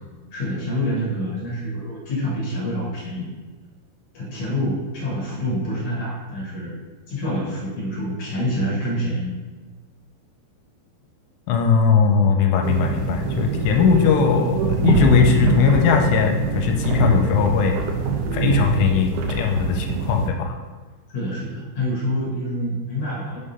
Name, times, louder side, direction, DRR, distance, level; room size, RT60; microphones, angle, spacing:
voice 1, 0.3-3.3 4.1-6.7 7.1-9.3 21.1-23.4, equal, 60° left, -5 dB, 2.1 m, -26 dB
voice 2, 11.5-17.8 18.3-20.6, left 6 dB, 80° left, 3 dB, 2.7 m, -19 dB
sound 1, 12.6-20.3, right 4 dB, 90° right, 2.1 m, -23 dB
6.4 x 3.7 x 5.4 m, 1.3 s
omnidirectional pair, 5.1 m